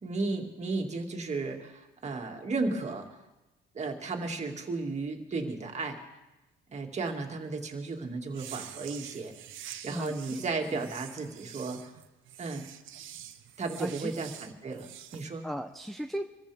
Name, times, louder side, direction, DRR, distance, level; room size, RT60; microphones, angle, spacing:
voice 1, 0.0-3.1 3.7-6.0 6.7-9.3 9.7-11.9 12.4-12.6 13.6-15.5, right 3 dB, 35° right, 2 dB, 2.3 m, -34 dB
sound 1, 8.3-15.2, right 11 dB, 75° right, 1.0 m, -46 dB
voice 2, 9.9-10.4 10.7-10.9 13.8-14.2 15.4-16.2, equal, ahead, 4 dB, 0.6 m, -36 dB
25.0 x 14.5 x 3.5 m, 1.0 s
cardioid pair, 105°, 20 cm